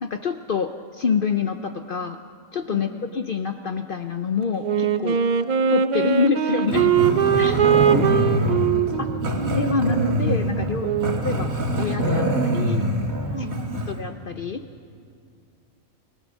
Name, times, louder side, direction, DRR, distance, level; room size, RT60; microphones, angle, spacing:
voice 1, 0.0-2.2 2.5-5.2 5.7-6.9 7.4-7.6 7.9-8.0 9.0-9.1 9.6-10.9 11.2-12.9 13.9-14.6, left 5 dB, 50° left, 7 dB, 0.7 m, -26 dB
voice 2, 2.7-3.0 5.4-5.5 7.4-9.2 13.3-13.9, right 1 dB, 20° right, 0 dB, 2.4 m, -35 dB
Wind instrument woodwind instrument, 4.6-11.3, right 8 dB, 45° right, 0.6 m, -22 dB
Growling, 6.7-14.0, right 1 dB, 75° right, 2.4 m, -24 dB
29.0 x 17.0 x 6.1 m, 2.3 s
omnidirectional pair, 1.4 m